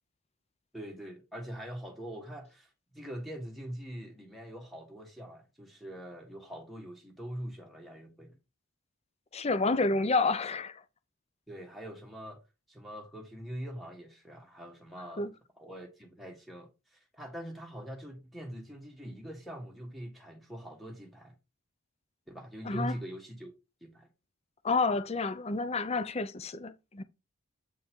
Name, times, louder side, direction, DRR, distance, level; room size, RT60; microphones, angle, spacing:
voice 1, 0.7-8.4 11.5-12.4 12.7-15.2 15.6-21.3 22.3-23.5 23.8-24.1, equal, ahead, 1.4 m, -43 dB
voice 2, 9.3-10.8 15.2-15.3 22.6-22.9 24.6-27.0, left 3 dB, 30° left, 0.5 m, -29 dB
7.9 x 5.5 x 3.6 m
head